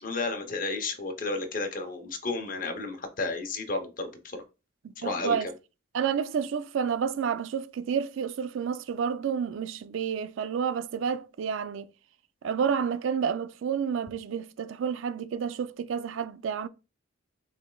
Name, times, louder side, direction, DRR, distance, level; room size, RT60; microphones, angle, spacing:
voice 1, 0.0-4.4 5.0-5.4, left 3 dB, 40° left, 0.8 m, -32 dB
voice 2, 5.0-5.5 5.9-11.9 12.4-16.7, right 7 dB, 70° right, 0.3 m, -30 dB
6.4 x 3.3 x 2.3 m
head